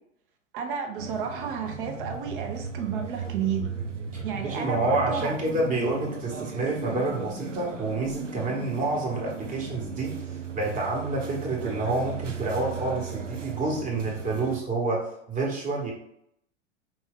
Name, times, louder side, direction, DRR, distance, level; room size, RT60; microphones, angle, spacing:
voice 1, 0.5-3.6 4.2-5.3, right 7 dB, 45° right, 3 dB, 0.9 m, -31 dB
sound 1, 1.0-14.6, right 6 dB, 85° right, 0.6 m, -36 dB
voice 2, 4.1-10.1 10.5-15.0 15.3-15.9, right 2 dB, 20° right, -2 dB, 1.3 m, -28 dB
4.5 x 2.7 x 3.6 m, 0.74 s
figure-of-eight pair, 95°, 36 cm